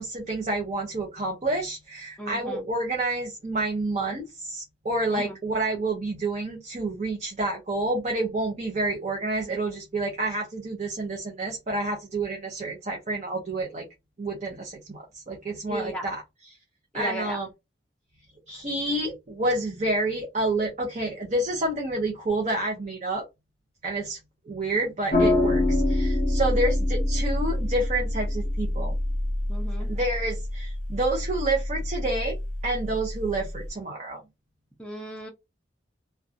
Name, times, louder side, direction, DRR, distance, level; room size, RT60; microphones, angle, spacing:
voice 1, 0.0-13.9 14.2-16.6 16.9-17.5 18.5-23.2 23.8-24.2 24.5-28.9 29.8-32.4 32.6-34.2, right 2 dB, 40° right, 0.6 m, -29 dB
voice 2, 2.2-2.6 5.1-5.3 15.7-16.1 16.9-17.4 29.5-29.9 34.8-35.3, right 1 dB, 5° left, 0.5 m, -35 dB
sound 1, 25.1-33.7, left 1 dB, 45° left, 0.8 m, -26 dB
2.6 x 2.2 x 2.5 m
head